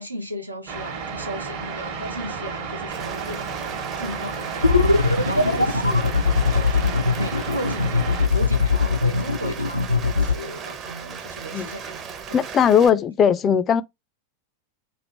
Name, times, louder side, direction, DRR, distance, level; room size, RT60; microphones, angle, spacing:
voice 1, 0.0-3.6 4.0-12.0 12.3-12.5, equal, 85° right, 0.7 m, -36 dB
sound 1, 0.7-8.3, right 5 dB, 45° right, 1.0 m, -32 dB
Rain, 2.9-12.9, right 6 dB, 30° right, 0.7 m, -37 dB
sound 2, 4.6-10.3, left 4 dB, 90° left, 0.4 m, -20 dB
voice 2, 12.3-13.8, left 8 dB, 25° left, 0.4 m, -18 dB
3.2 x 2.5 x 4.0 m
figure-of-eight pair, 90°, 0 cm